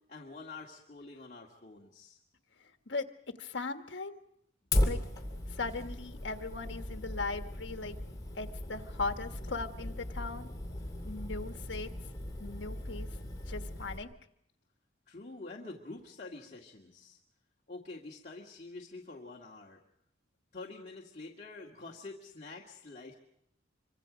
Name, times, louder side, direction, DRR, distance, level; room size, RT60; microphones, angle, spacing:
voice 1, 0.1-2.2 15.1-17.2 17.7-19.8 20.5-23.1, left 3 dB, 40° left, -2 dB, 2.0 m, -47 dB
voice 2, 2.6-3.1 3.4-4.2 4.8-5.0 5.5-7.9 8.4-10.5 11.0-11.9 12.4-13.1 13.5-14.1, left 3 dB, 70° left, 7 dB, 1.5 m, -38 dB
Fire, 4.7-14.0, left 1 dB, 20° left, 2.6 m, -37 dB
26.0 x 24.5 x 5.1 m, 0.72 s
head